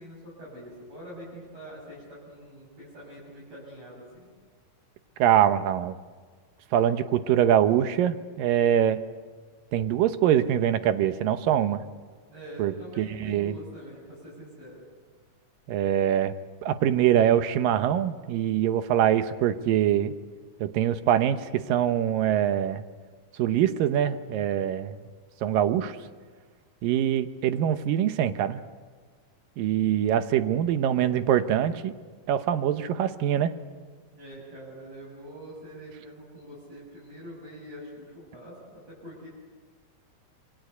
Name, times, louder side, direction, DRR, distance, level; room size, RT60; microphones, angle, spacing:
voice 1, 0.0-4.3 12.3-14.8 34.1-39.3, equal, 45° right, -6 dB, 7.9 m, -44 dB
voice 2, 5.2-6.0 6.7-9.0 9.7-11.8 12.6-13.6 15.7-16.3 16.6-20.1 20.6-22.8 23.4-25.0 25.4-26.0 26.8-28.6 29.6-31.9 32.3-33.5, right 10 dB, 85° right, 11 dB, 2.7 m, -24 dB
26.5 x 24.5 x 8.2 m, 1.5 s
omnidirectional pair, 3.9 m